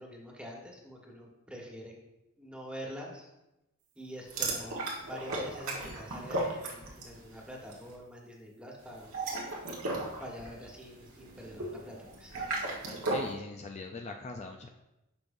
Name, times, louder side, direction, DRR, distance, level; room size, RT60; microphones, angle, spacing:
voice 1, 0.0-1.9 2.4-3.3 3.9-9.1 10.2-12.4, equal, 5° right, -2 dB, 1.4 m, -45 dB
sound 1, 4.3-7.2 7.5-7.8 9.0-13.3, right 2 dB, 80° right, 1.6 m, -35 dB
voice 2, 13.1-14.7, left 3 dB, 30° left, 3 dB, 0.4 m, -41 dB
10.5 x 6.4 x 2.6 m, 0.93 s
head